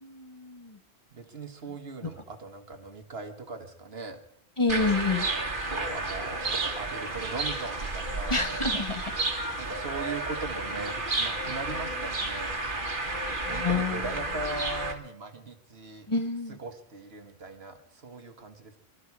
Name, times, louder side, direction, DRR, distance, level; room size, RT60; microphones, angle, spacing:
voice 1, 0.0-0.8 2.0-2.1 4.6-5.3 8.3-9.2 13.4-14.0 16.1-16.6, left 3 dB, 25° left, 4 dB, 1.4 m, -28 dB
voice 2, 1.1-4.2 5.6-8.4 9.6-12.5 13.4-16.1 16.5-18.7, right 3 dB, 65° right, 6 dB, 1.7 m, -39 dB
sound 1, 4.7-14.9, right 2 dB, 45° right, 1.8 m, -31 dB
24.0 x 12.5 x 4.8 m, 0.70 s
omnidirectional pair, 1.2 m